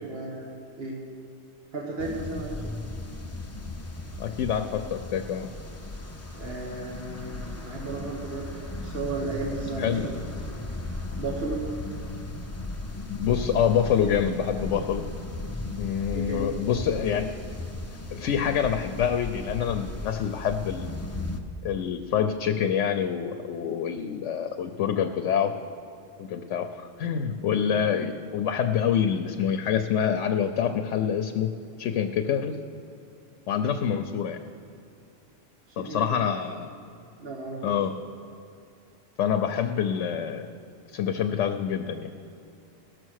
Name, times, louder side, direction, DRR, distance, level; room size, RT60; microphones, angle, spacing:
voice 1, 0.0-0.5 0.8-1.0 1.7-2.8 6.3-8.5 8.8-10.0 11.1-11.6 16.1-16.5 35.8-36.0 37.2-37.8, right 3 dB, 55° right, -2 dB, 1.5 m, -34 dB
sound 1, 2.0-21.4, left 2 dB, 20° left, 0.4 m, -36 dB
voice 2, 4.2-5.5 9.8-10.0 13.1-15.0 15.8-17.3 18.1-21.0 21.6-25.5 26.2-31.5 31.8-32.6 33.5-34.4 35.8-36.7 37.6-37.9 39.2-40.5 40.9-42.1, left 8 dB, 80° left, 7 dB, 0.9 m, -26 dB
18.0 x 6.5 x 6.3 m, 2.5 s
omnidirectional pair, 1.2 m